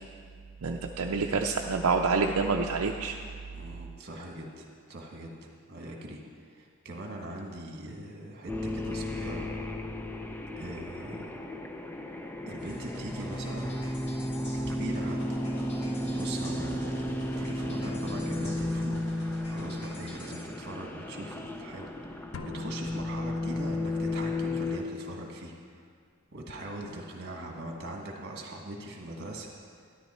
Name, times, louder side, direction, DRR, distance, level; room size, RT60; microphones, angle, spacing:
voice 1, 0.6-3.2, right 4 dB, 75° right, 2 dB, 0.5 m, -27 dB
voice 2, 3.5-5.4 5.7-9.5 10.6-11.3 12.5-13.7 14.7-15.4 16.0-19.0 19.5-25.8 26.3-29.5, right 1 dB, 50° right, 1 dB, 1.7 m, -41 dB
sound 1, 8.5-24.8, left 1 dB, 10° left, 0.5 m, -34 dB
sound 2, 12.6-20.4, equal, 50° left, 2.1 m, -48 dB
sound 3, 22.3-24.0, left 4 dB, 70° left, 0.6 m, -45 dB
12.5 x 10.5 x 4.3 m, 2.1 s
head